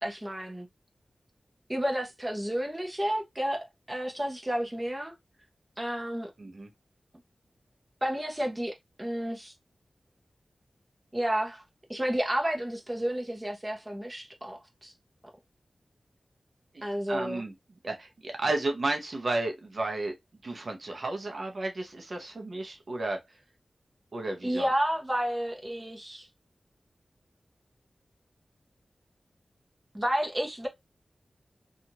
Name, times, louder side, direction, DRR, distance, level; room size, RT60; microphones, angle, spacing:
voice 1, 0.0-0.7 1.7-5.1 5.8-6.3 8.0-9.5 11.1-11.6 11.9-14.9 16.8-17.4 24.4-26.3 29.9-30.7, equal, 15° right, 0.8 m, -31 dB
voice 2, 6.4-6.7 16.7-17.5 17.8-20.1 20.4-23.4 24.1-24.7, right 2 dB, 55° right, 0.6 m, -33 dB
2.8 x 2.4 x 2.8 m
wide cardioid pair, 105°, 0 cm